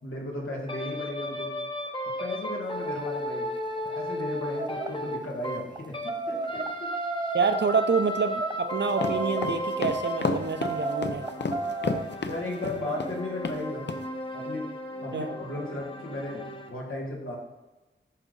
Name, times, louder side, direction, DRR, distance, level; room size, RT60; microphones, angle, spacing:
voice 1, 0.0-1.5 2.2-3.5 3.8-6.9 12.2-13.9 14.3-14.7 15.0-16.4 16.7-17.4, left 1 dB, 85° left, -2 dB, 1.9 m, -35 dB
sound 1, 0.7-6.2 6.4-16.7, equal, 25° left, 0.9 m, -35 dB
sound 2, 2.8-3.2 3.8-4.0 4.5-4.9 5.6-7.7 8.3-8.6 9.0-9.5 10.0-12.1, right 2 dB, 20° right, 0.4 m, -33 dB
voice 2, 7.3-11.3 15.1-15.3, right 5 dB, 60° right, 7 dB, 0.7 m, -27 dB
sound 3, 8.9-13.2 13.4-13.6 13.9-14.0, left 4 dB, 60° left, 0.6 m, -30 dB
11.0 x 4.0 x 3.9 m, 1.1 s
wide cardioid pair, 75°, 21 cm